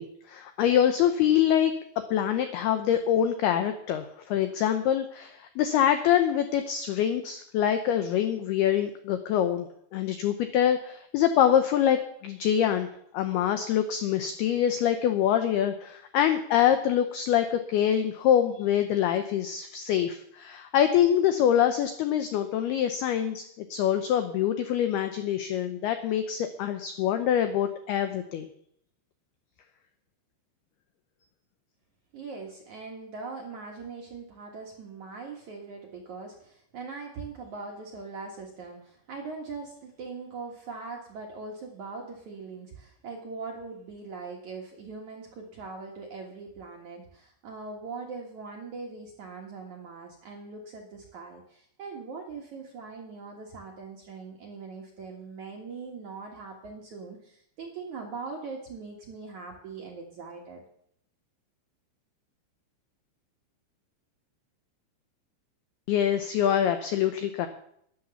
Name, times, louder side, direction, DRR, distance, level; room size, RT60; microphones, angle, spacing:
voice 1, 0.0-1.7 2.1-9.7 9.9-12.9 13.1-28.5 65.9-67.5, left 10 dB, 85° left, 8 dB, 2.2 m, -25 dB
voice 2, 32.1-60.6, right 4 dB, 60° right, 0 dB, 2.0 m, -41 dB
12.0 x 11.0 x 7.0 m, 0.70 s
omnidirectional pair, 5.7 m